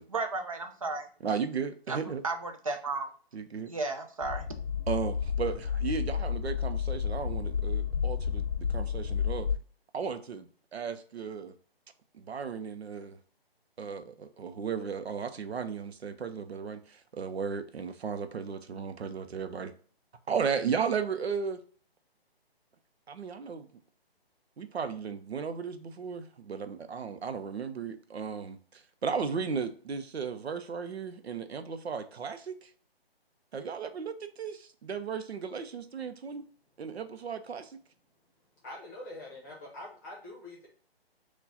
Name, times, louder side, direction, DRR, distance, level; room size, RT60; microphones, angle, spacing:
voice 1, 0.1-1.1 1.9-3.1 3.7-4.5, right 3 dB, 35° right, 5 dB, 0.4 m, -34 dB
voice 2, 1.2-2.2 3.3-3.7 4.9-8.4 8.7-9.5 9.9-10.4 10.7-11.5 12.1-13.2 13.8-19.7 20.3-21.6 23.1-23.7 24.6-32.7 33.5-36.5 36.8-37.8, right 6 dB, 90° right, 9 dB, 0.7 m, -35 dB
sound 1, 4.2-9.6, left 7 dB, 80° left, 0.5 m, -31 dB
voice 3, 38.6-40.7, left 1 dB, 20° left, -3 dB, 1.1 m, -44 dB
4.5 x 2.4 x 3.9 m, 0.43 s
hypercardioid pair, 160°, 31 cm